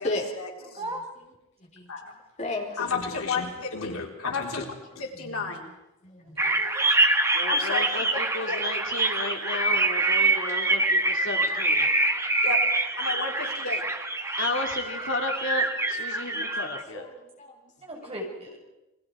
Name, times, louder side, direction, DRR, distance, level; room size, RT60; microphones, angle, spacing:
voice 1, 0.0-0.8 1.9-2.1 2.8-4.6 5.0-5.7 7.5-8.2 8.5-8.6 12.4-12.6 13.0-13.8, left 4 dB, 85° left, 0 dB, 4.0 m, -32 dB
voice 2, 0.6-1.3 1.6-2.8 5.1-5.5 6.0-6.4 16.2-17.8 18.0-18.1, left 2 dB, 35° left, 1 dB, 4.2 m, -37 dB
voice 3, 6.2-6.9 10.4-10.5 11.8-11.9 13.1-13.3 16.9-17.0 17.8-18.6, right 1 dB, 30° right, -1 dB, 6.4 m, -38 dB
sound 1, 6.4-16.8, right 2 dB, 15° right, 1.3 m, -25 dB
voice 4, 7.3-11.9 14.4-17.0, left 2 dB, 60° left, 3 dB, 2.5 m, -33 dB
29.0 x 22.0 x 4.9 m, 0.94 s
head